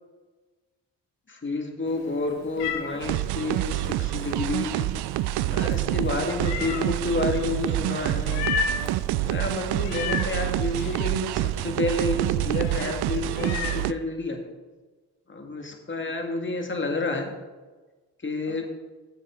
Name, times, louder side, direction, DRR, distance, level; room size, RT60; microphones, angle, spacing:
voice 1, 1.3-4.9 5.5-8.5 9.2-14.4 15.3-17.3 18.2-18.6, left 2 dB, 30° left, 3 dB, 2.0 m, -29 dB
Meow, 1.9-13.9, left 6 dB, 85° left, 1.1 m, -36 dB
sound 1, 3.0-13.9, right 15 dB, 70° right, 0.5 m, -27 dB
11.0 x 7.8 x 3.7 m, 1.3 s
supercardioid pair, 55°, 41 cm